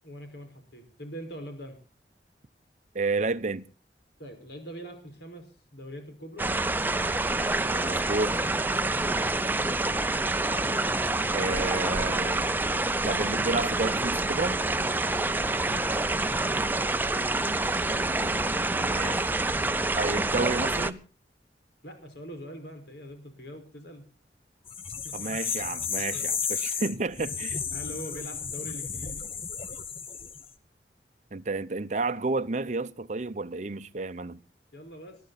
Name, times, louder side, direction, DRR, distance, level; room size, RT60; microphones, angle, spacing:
voice 1, 0.0-1.8 4.2-6.5 9.4-9.8 15.7-15.8 21.8-24.0 25.0-25.2 26.1-26.3 27.7-29.3 34.7-35.2, equal, 75° left, 5.3 m, -43 dB
voice 2, 2.9-3.7 7.7-8.4 11.3-12.5 13.0-14.6 17.9-19.3 20.0-21.0 25.1-27.6 31.3-34.4, right 3 dB, 45° right, 0.7 m, -31 dB
sound 1, 6.4-20.9, right 2 dB, 10° right, 0.7 m, -27 dB
sound 2, 24.7-30.5, left 6 dB, 35° left, 1.2 m, -33 dB
20.0 x 12.5 x 4.2 m
head